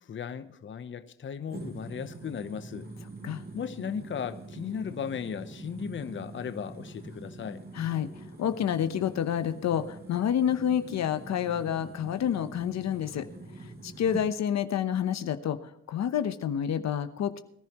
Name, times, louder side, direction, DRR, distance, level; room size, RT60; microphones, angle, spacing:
voice 1, 0.0-2.9 3.5-7.6, left 7 dB, 40° left, 0.9 m, -36 dB
sound 1, 1.5-14.3, right 2 dB, 30° right, 2.7 m, -44 dB
voice 2, 7.7-8.1 8.4-13.2 13.8-17.4, left 9 dB, 65° left, 0.9 m, -28 dB
22.5 x 11.0 x 3.0 m
cardioid pair, 90°, 30 cm